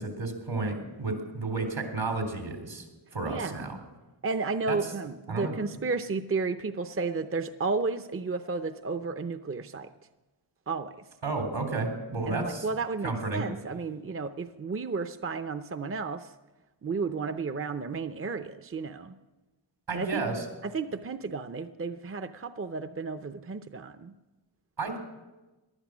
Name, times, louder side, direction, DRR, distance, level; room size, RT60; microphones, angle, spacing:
voice 1, 0.0-2.8 3.1-3.8 4.7-4.8 5.3-5.5 11.2-12.7 13.0-13.4 19.9-20.4 24.8-25.0, right 3 dB, 75° right, 4 dB, 3.5 m, -32 dB
voice 2, 3.2-3.7 4.2-9.9 10.7-11.0 12.3-16.3 16.8-19.2 19.9-20.2 20.6-24.1, right 4 dB, 30° right, 10 dB, 0.7 m, -32 dB
19.0 x 11.5 x 6.2 m, 1.1 s
wide cardioid pair, 65°, 45 cm